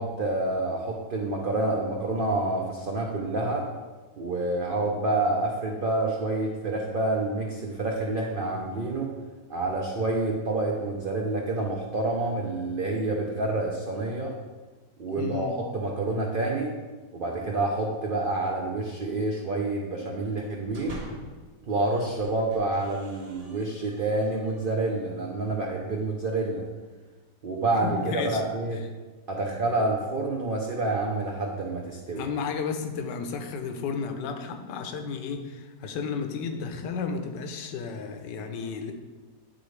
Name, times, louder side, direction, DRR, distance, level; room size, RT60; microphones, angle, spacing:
voice 1, 0.0-3.7 4.2-9.1 9.5-14.3 15.0-16.7 17.1-21.0 21.7-26.7 27.4-28.8 29.3-32.3, right 2 dB, 75° right, 0 dB, 0.4 m, -28 dB
voice 2, 15.2-15.5 27.8-28.4 29.5-29.6 32.2-38.9, left 5 dB, 85° left, 6 dB, 1.3 m, -33 dB
sound 1, 20.5-21.5 22.0-24.8, right 1 dB, 30° right, 0.8 m, -46 dB
9.8 x 3.8 x 3.2 m, 1.3 s
omnidirectional pair, 1.8 m